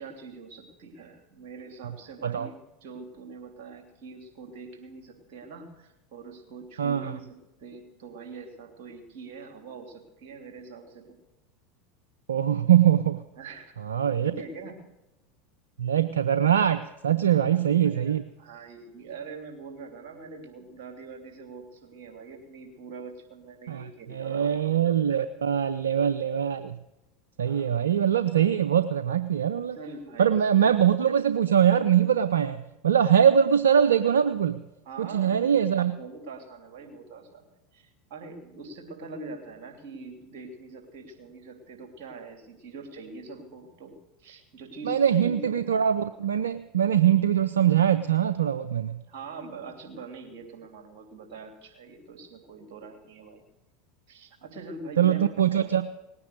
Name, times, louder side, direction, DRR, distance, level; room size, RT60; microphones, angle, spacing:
voice 1, 0.0-11.2 13.4-13.7 14.2-14.9 17.2-24.6 27.4-28.1 29.7-30.5 34.8-45.5 49.1-53.4 54.1-55.2 55.6-55.8, right 4 dB, 60° right, 4 dB, 3.2 m, -43 dB
voice 2, 6.8-7.1 12.3-13.2 13.8-14.3 15.8-18.2 23.7-26.8 27.4-29.8 30.2-34.6 35.0-35.9 44.9-49.0 55.0-55.8, right 9 dB, 85° right, 12 dB, 0.5 m, -23 dB
19.0 x 9.7 x 6.7 m, 0.99 s
hypercardioid pair, 85°, 0 cm